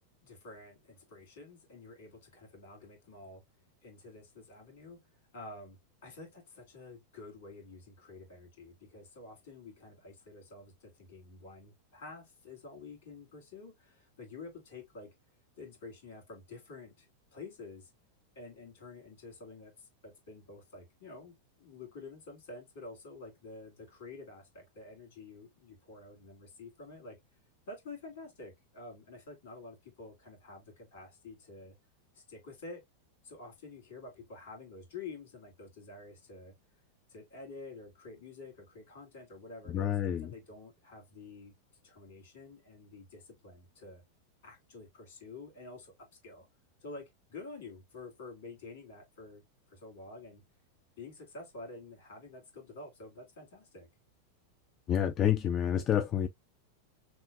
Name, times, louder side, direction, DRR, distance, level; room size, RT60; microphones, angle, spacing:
voice 1, 0.2-3.4 3.8-15.1 15.6-17.9 18.3-27.2 27.7-31.8 32.1-32.8 33.2-36.5 37.1-41.5 41.8-44.0 44.4-46.5 46.8-50.4 51.0-53.9, left 3 dB, 55° left, 2.2 m, -49 dB
voice 2, 39.7-40.3 54.9-56.3, left 10 dB, 30° left, 0.3 m, -28 dB
6.0 x 2.2 x 2.4 m
figure-of-eight pair, 90°, 0 cm